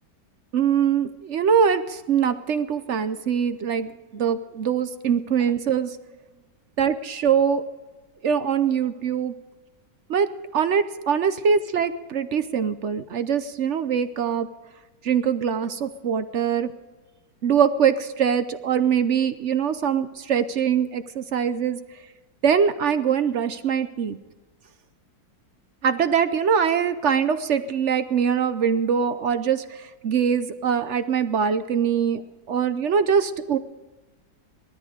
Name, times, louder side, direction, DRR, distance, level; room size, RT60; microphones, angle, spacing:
voice 1, 0.5-6.0 6.8-7.6 8.2-9.3 10.1-10.3 10.5-14.5 15.0-16.7 17.4-21.8 22.4-24.2 25.8-32.2 32.5-33.6, right 7 dB, 60° right, 11 dB, 0.8 m, -23 dB
19.0 x 13.5 x 5.0 m, 1.2 s
omnidirectional pair, 2.0 m